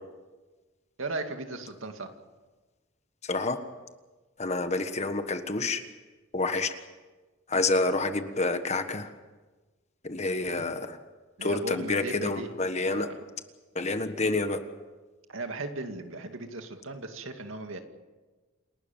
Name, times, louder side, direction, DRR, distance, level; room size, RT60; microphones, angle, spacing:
voice 1, 1.0-2.1 7.5-7.7 10.5-10.6 11.4-12.5 12.9-13.2 15.3-17.8, right 2 dB, 75° right, 5 dB, 2.3 m, -37 dB
voice 2, 3.2-3.6 4.4-5.8 6.3-6.7 7.5-9.1 10.0-11.0 11.4-13.1 13.7-14.6, left 3 dB, 35° left, 9 dB, 1.4 m, -28 dB
28.5 x 12.5 x 9.1 m, 1.3 s
head